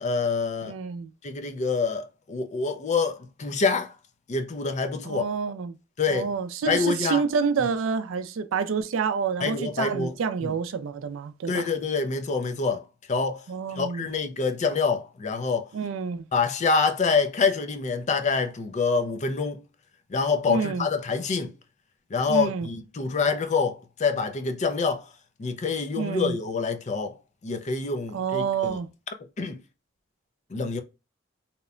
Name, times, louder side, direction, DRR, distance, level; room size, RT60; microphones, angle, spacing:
voice 1, 0.0-0.7 1.2-3.9 4.3-5.2 6.0-6.3 6.7-7.2 9.4-10.1 10.4-10.5 11.5-13.4 13.8-15.7 16.3-19.6 20.1-21.5 22.1-25.1 25.4-27.2 27.4-28.8 29.4-29.6 30.5-30.8, left 4 dB, 35° left, 0.4 m, -26 dB
voice 2, 0.6-1.1 5.1-5.8 6.1-11.6 13.5-14.1 15.7-16.3 20.5-20.9 22.3-22.7 26.0-26.4 28.1-28.9, right 6 dB, 75° right, 0.4 m, -28 dB
2.8 x 2.1 x 2.4 m
head